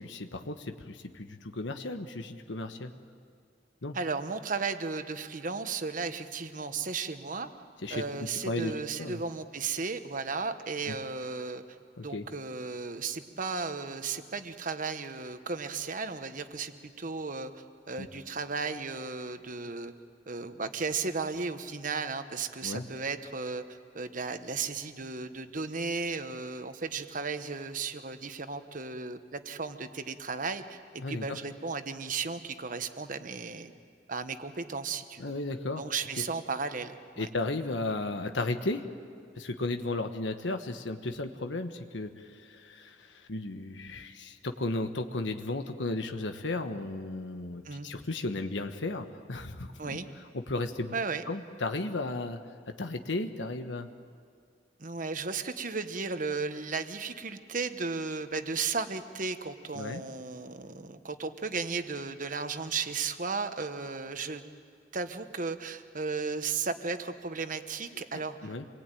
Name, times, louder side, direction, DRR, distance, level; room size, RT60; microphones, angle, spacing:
voice 1, 0.0-2.9 3.8-4.0 7.8-8.0 8.4-8.7 9.0-9.2 10.9-11.0 12.0-12.2 18.0-18.1 22.6-22.8 31.0-31.4 35.2-35.8 37.2-38.8 39.4-50.0 50.3-50.9 51.3-52.4 52.8-53.9 59.7-60.0 67.9-68.6, left 2 dB, 90° left, 6 dB, 1.2 m, -34 dB
voice 2, 3.9-7.5 7.9-11.6 12.0-17.5 17.9-19.9 20.3-23.6 23.9-33.7 34.1-35.3 35.8-37.3 47.6-47.9 49.8-50.1 50.9-51.2 54.8-64.4 64.9-68.5, right 4 dB, 45° right, 9 dB, 1.2 m, -35 dB
27.0 x 20.0 x 9.1 m, 2.2 s
head